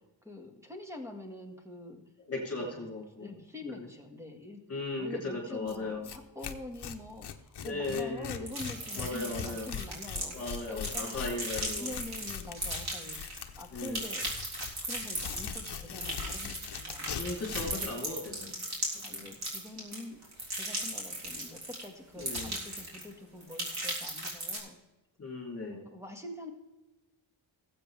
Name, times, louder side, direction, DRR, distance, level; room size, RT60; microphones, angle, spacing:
voice 1, 0.2-2.0 2.6-2.9 3.2-4.6 5.0-11.3 11.8-14.3 14.8-17.5 18.4-18.7 19.0-20.2 20.5-24.8 25.9-26.5, left 2 dB, 5° right, 3 dB, 1.8 m, -45 dB
voice 2, 2.2-3.3 3.6-3.9 4.7-6.1 7.6-8.5 9.0-9.7 10.3-11.9 13.7-14.0 17.2-18.5 18.9-19.3 22.2-22.5 25.2-25.9, left 2 dB, 30° left, -1 dB, 3.4 m, -37 dB
Tearing, 5.7-5.8 6.0-6.2 6.4-17.8, left 8 dB, 60° left, 1.0 m, -41 dB
sound 1, 8.5-13.5 13.8-21.8 22.2-23.1 23.4-24.6, right 1 dB, 55° right, 3.6 m, -37 dB
18.5 x 8.1 x 3.4 m, 1.0 s
wide cardioid pair, 155°, 46 cm